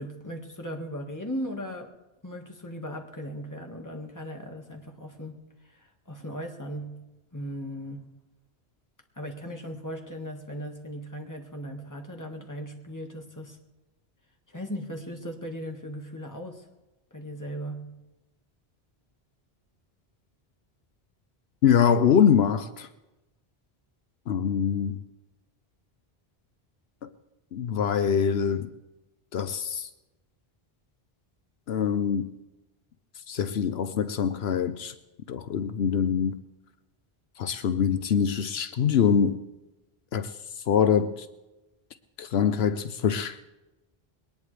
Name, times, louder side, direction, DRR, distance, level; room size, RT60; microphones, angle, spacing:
voice 1, 0.0-1.9 2.2-5.4 5.6-7.1 7.3-8.1 9.2-13.6 14.5-16.7 17.1-18.0, equal, 20° left, 1.7 m, -37 dB
voice 2, 21.6-22.9 24.3-25.0 27.5-28.7 29.3-29.9 31.7-32.3 33.3-34.9 35.3-36.4 37.4-39.4 40.1-40.3 40.7-41.3 42.2-43.4, left 7 dB, 80° left, 1.0 m, -24 dB
21.5 x 19.0 x 3.3 m
omnidirectional pair, 1.0 m